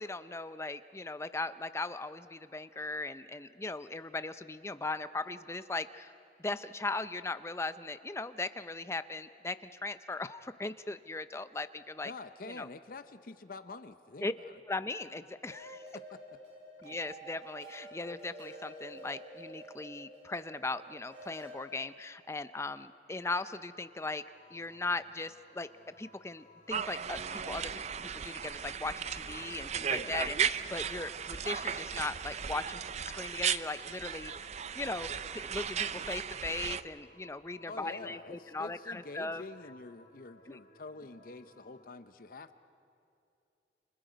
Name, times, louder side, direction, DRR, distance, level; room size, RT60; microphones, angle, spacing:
voice 1, 0.0-6.1 6.4-12.1 12.5-12.7 14.2-14.3 14.7-15.9 16.8-24.2 24.5-34.3 34.7-39.4 40.5-40.6, left 3 dB, 15° left, 12 dB, 0.5 m, -38 dB
voice 2, 12.0-14.6 15.9-16.2 29.9-30.2 37.7-42.6, left 3 dB, 50° left, 11 dB, 0.7 m, -47 dB
sound 1, 15.5-21.5, right 1 dB, 80° right, 6.9 m, -49 dB
sound 2, 23.7-41.8, left 1 dB, 75° left, 3.4 m, -62 dB
sound 3, 26.7-36.8, right 7 dB, 40° right, 0.5 m, -36 dB
28.5 x 27.5 x 5.1 m, 2.6 s
head